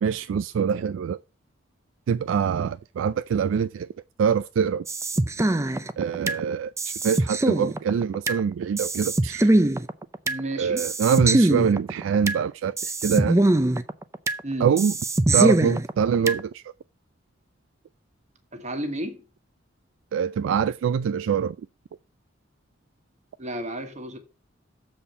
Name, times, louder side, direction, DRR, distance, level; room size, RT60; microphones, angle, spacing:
voice 1, 0.0-1.2 2.1-3.9 4.2-4.9 6.0-9.5 10.6-13.4 14.6-14.9 15.3-16.6 20.1-21.6, right 7 dB, 80° right, 0.3 m, -24 dB
sound 1, 4.9-6.4 6.8-8.4 8.8-10.4 10.8-12.4 12.8-14.4 14.8-16.4, right 2 dB, 15° right, 0.5 m, -22 dB
voice 2, 10.2-10.9 14.4-14.7 18.5-19.2 23.4-24.2, right 1 dB, 35° right, 1.3 m, -32 dB
7.3 x 4.3 x 6.6 m
head